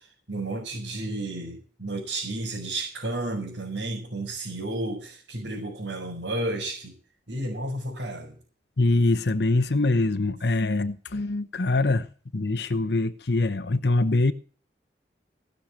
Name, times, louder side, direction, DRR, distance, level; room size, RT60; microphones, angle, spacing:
voice 1, 0.3-6.9 7.3-8.3, right 2 dB, 80° right, 5.4 m, -32 dB
voice 2, 8.8-12.0 12.3-14.3, left 2 dB, 65° left, 0.9 m, -23 dB
17.5 x 6.7 x 7.4 m
head